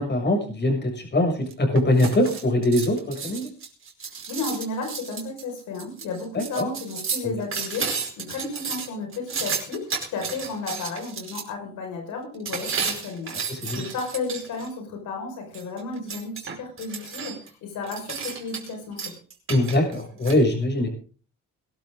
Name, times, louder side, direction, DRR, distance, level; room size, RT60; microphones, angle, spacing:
voice 1, 0.0-3.5 6.3-6.7 7.2-7.3 13.5-13.8 19.5-20.9, left 1 dB, 35° left, 3 dB, 7.0 m, -22 dB
sound 1, 1.5-11.4 12.5-14.7 15.5-17.5 17.8-18.7 19.0-20.4, right 5 dB, 45° right, 5.1 m, -32 dB
voice 2, 4.1-19.1, left 3 dB, 85° left, 3 dB, 5.5 m, -33 dB
22.0 x 12.5 x 3.8 m, 0.41 s
cardioid pair, 90°, 30 cm